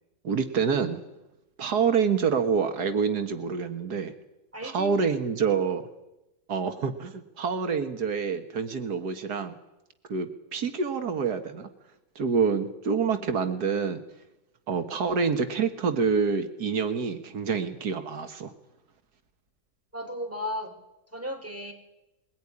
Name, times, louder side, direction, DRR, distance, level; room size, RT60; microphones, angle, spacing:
voice 1, 0.2-1.0 1.6-4.1 4.6-5.8 6.5-9.6 10.1-11.7 12.2-14.0 14.7-18.5, right 5 dB, 85° right, 8 dB, 1.9 m, -27 dB
voice 2, 4.5-5.0 19.9-20.7 21.1-21.7, left 1 dB, 10° right, 4 dB, 3.9 m, -35 dB
22.0 x 16.5 x 9.8 m, 0.95 s
omnidirectional pair, 1.7 m